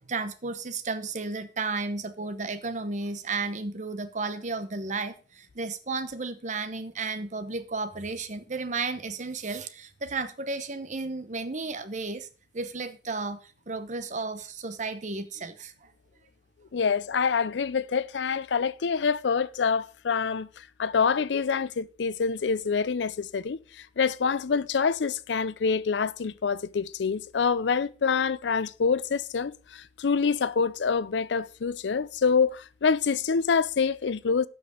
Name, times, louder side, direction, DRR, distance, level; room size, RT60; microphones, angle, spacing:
voice 1, 0.1-12.3 12.5-13.4 13.7-15.9, right 3 dB, 45° right, 0.9 m, -33 dB
voice 2, 16.7-34.5, left 5 dB, 90° left, 0.5 m, -26 dB
8.0 x 6.0 x 6.3 m
head